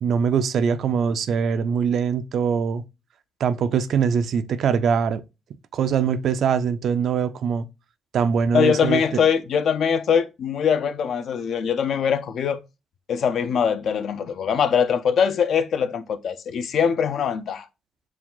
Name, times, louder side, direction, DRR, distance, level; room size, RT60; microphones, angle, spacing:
voice 1, 0.0-2.8 3.4-5.2 5.7-7.7 8.1-9.0, right 6 dB, 65° right, 0.4 m, -22 dB
voice 2, 8.5-12.6 13.1-17.7, left 7 dB, 65° left, 0.5 m, -22 dB
4.6 x 2.4 x 3.7 m
cardioid pair, 90°, 0 cm